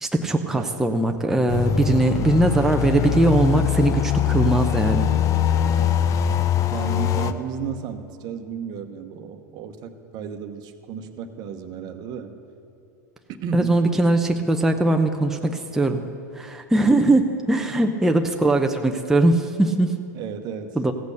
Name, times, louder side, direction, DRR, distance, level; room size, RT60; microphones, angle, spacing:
voice 1, 0.0-5.1 13.5-16.0 16.4-20.0 20.8-20.9, right 2 dB, 5° right, 3 dB, 0.7 m, -20 dB
sound 1, 1.5-7.3, left 9 dB, 35° left, 0.6 m, -22 dB
voice 2, 4.3-4.6 5.6-6.0 6.7-12.4 13.4-13.8 16.0-16.1 17.7-17.9 20.1-20.8, right 7 dB, 45° right, 7 dB, 1.1 m, -34 dB
15.5 x 8.3 x 6.6 m, 2.7 s
hypercardioid pair, 90°, 10 cm